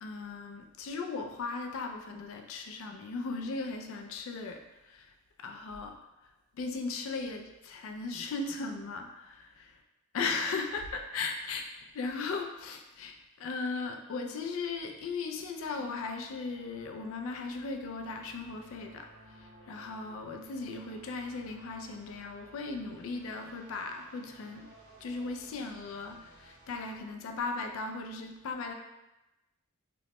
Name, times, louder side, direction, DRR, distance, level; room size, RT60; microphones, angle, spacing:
voice 1, 0.0-5.1 5.4-5.9 6.6-9.8 10.1-24.7 25.0-28.7, left 4 dB, 65° left, 4 dB, 0.3 m, -37 dB
sound 1, 15.7-27.0, equal, 75° right, 1.1 m, -57 dB
3.0 x 2.1 x 2.8 m, 0.98 s
head